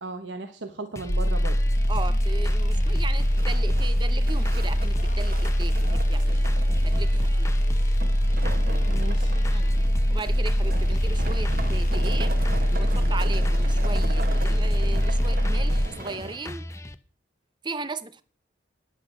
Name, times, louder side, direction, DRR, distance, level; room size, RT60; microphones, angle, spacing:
voice 1, 0.0-1.6 8.9-9.3, right 3 dB, 75° right, 1.1 m, -36 dB
sound 1, 1.0-16.9, left 1 dB, 15° left, 0.6 m, -40 dB
sound 2, 1.1-15.9, equal, 40° left, 1.3 m, -23 dB
voice 2, 1.9-6.6 6.8-7.6 9.5-9.8 10.1-12.3 12.7-16.7 17.6-18.2, right 3 dB, 25° right, 0.6 m, -37 dB
sound 3, 2.2-16.4, right 2 dB, 50° right, 1.2 m, -38 dB
10.5 x 8.1 x 6.5 m
head